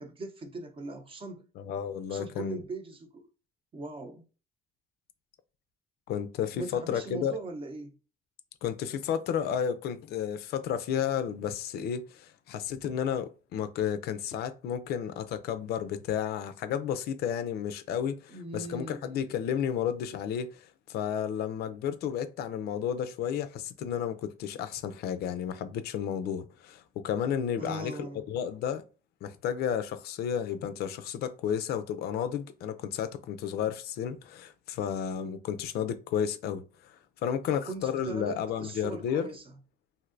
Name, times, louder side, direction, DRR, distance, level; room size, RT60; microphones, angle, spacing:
voice 1, 0.0-1.5 2.1-3.3 3.7-4.2 6.5-7.9 18.3-19.1 27.6-28.3 37.5-39.4, right 2 dB, 30° right, 0.7 m, -40 dB
voice 2, 1.6-2.6 6.1-7.4 8.6-28.8 29.2-37.0 37.2-39.3, left 8 dB, 70° left, 0.4 m, -32 dB
3.2 x 2.6 x 2.5 m
cardioid pair, 110°, 17 cm